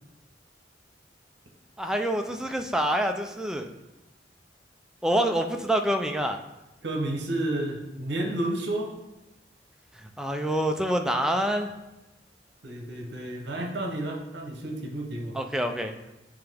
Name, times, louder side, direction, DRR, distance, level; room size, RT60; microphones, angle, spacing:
voice 1, 1.8-3.7 5.0-6.4 10.2-11.7 15.3-15.9, right 1 dB, 5° right, 4 dB, 0.4 m, -26 dB
voice 2, 6.8-8.9 12.6-15.4, right 1 dB, 70° right, 1 dB, 0.9 m, -31 dB
8.6 x 3.4 x 3.4 m, 0.99 s
head